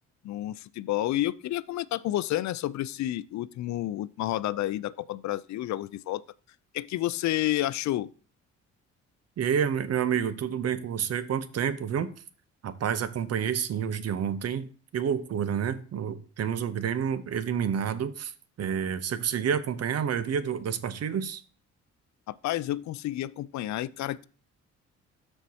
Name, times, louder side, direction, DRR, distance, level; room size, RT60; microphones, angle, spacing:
voice 1, 0.2-6.2 6.7-8.1 22.3-24.2, left 14 dB, 70° left, 0.5 m, -30 dB
voice 2, 9.4-12.1 12.6-18.3 18.6-21.4, right 8 dB, 55° right, 0.8 m, -29 dB
13.0 x 4.5 x 2.8 m
cardioid pair, 90°, 30 cm